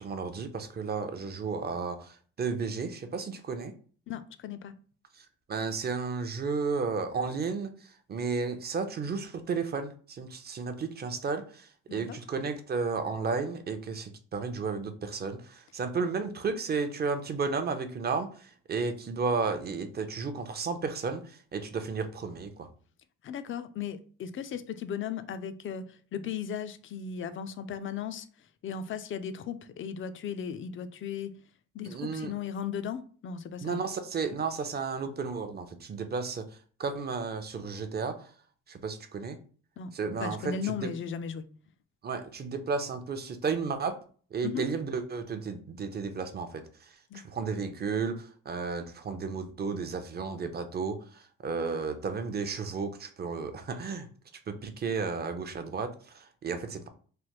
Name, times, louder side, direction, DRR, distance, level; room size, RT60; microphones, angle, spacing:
voice 1, 0.0-3.7 5.1-22.7 31.8-32.3 33.6-36.4 36.8-38.3 38.7-39.4 39.9-40.9 42.0-44.0 44.3-54.1 54.5-56.9, right 5 dB, 35° right, 0.5 m, -33 dB
voice 2, 4.1-4.7 11.9-12.2 23.2-25.9 26.1-28.3 28.6-31.3 31.7-33.8 39.8-39.9 40.2-41.4 44.4-44.6 47.1-47.2, left 7 dB, 45° left, 0.4 m, -36 dB
3.3 x 2.1 x 2.9 m
cardioid pair, 90°, 30 cm